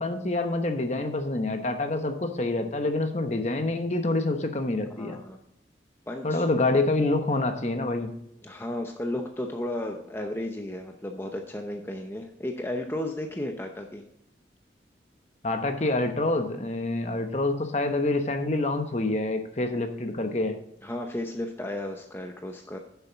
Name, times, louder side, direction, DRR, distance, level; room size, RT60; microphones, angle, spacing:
voice 1, 0.0-5.2 6.2-8.1 15.4-20.6, left 2 dB, 35° left, 6 dB, 1.0 m, -27 dB
voice 2, 4.9-5.4 6.1-6.4 8.4-14.0 20.8-22.8, left 1 dB, 10° left, 3 dB, 0.7 m, -34 dB
10.5 x 7.0 x 4.0 m, 0.77 s
head